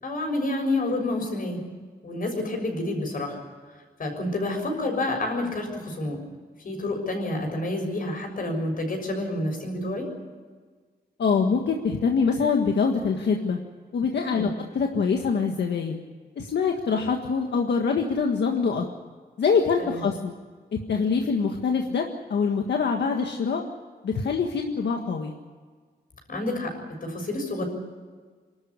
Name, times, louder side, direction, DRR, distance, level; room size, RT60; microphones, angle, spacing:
voice 1, 0.0-1.6 2.0-3.4 4.0-6.2 6.6-10.1 14.3-14.5 19.8-20.0 26.3-26.7 27.0-27.6, left 2 dB, 55° left, 2 dB, 6.6 m, -29 dB
voice 2, 11.2-13.6 13.9-16.0 16.4-18.8 19.4-20.3 20.7-23.6 24.0-25.3, left 5 dB, 85° left, 3 dB, 1.7 m, -24 dB
27.5 x 13.0 x 9.7 m, 1.5 s
wide cardioid pair, 165°, 17 cm